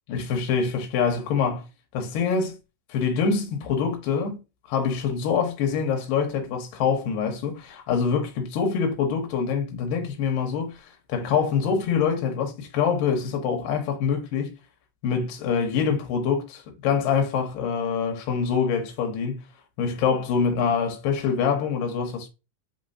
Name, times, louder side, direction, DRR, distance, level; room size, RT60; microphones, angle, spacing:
voice 1, 0.1-1.7 1.9-2.6 2.9-4.4 4.7-14.5 15.0-19.5 19.8-22.3, left 6 dB, 85° left, 2.5 m, -25 dB
5.6 x 3.1 x 2.6 m
omnidirectional pair, 3.9 m